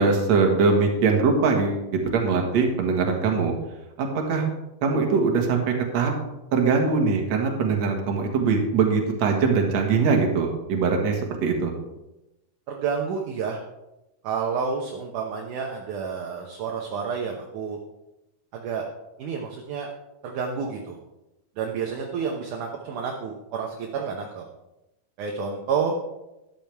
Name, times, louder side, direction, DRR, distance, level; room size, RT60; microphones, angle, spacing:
voice 1, 0.0-1.8 2.1-3.5 4.0-4.4 4.8-6.1 6.5-11.7, right 4 dB, 55° right, 2 dB, 2.3 m, -22 dB
voice 2, 12.7-13.6 14.2-17.8 18.5-18.8 19.2-19.9 20.2-21.0 21.6-24.4 25.2-25.9, right 6 dB, 70° right, 1 dB, 2.0 m, -29 dB
13.0 x 10.5 x 3.5 m, 0.96 s
omnidirectional pair, 4.6 m